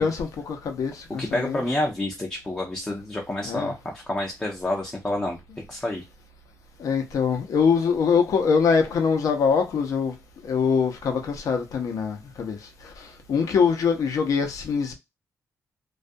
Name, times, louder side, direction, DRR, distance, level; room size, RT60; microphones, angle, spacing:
voice 1, 0.0-1.6 3.4-3.7 6.8-10.1 10.4-12.6 13.3-14.9, left 6 dB, 65° left, 0.7 m, -23 dB
voice 2, 1.2-5.4 5.7-6.0, left 1 dB, 15° left, 0.5 m, -28 dB
2.3 x 2.2 x 2.6 m
wide cardioid pair, 140°, 6 cm